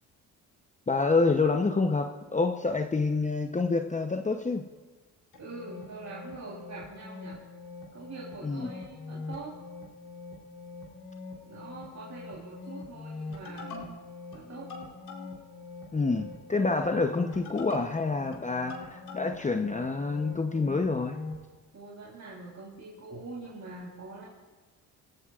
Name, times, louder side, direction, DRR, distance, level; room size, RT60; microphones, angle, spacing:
voice 1, 0.9-4.7 8.4-8.7 15.9-21.2, left 3 dB, 20° left, 5 dB, 0.8 m, -27 dB
sound 1, 5.3-21.4, left 3 dB, 65° left, 3.8 m, -43 dB
voice 2, 5.4-7.4 7.9-9.6 11.4-14.0 14.3-14.7 21.7-24.3, right 3 dB, 45° right, -5 dB, 3.6 m, -44 dB
28.0 x 14.5 x 2.5 m, 1.3 s
supercardioid pair, 65°, 39 cm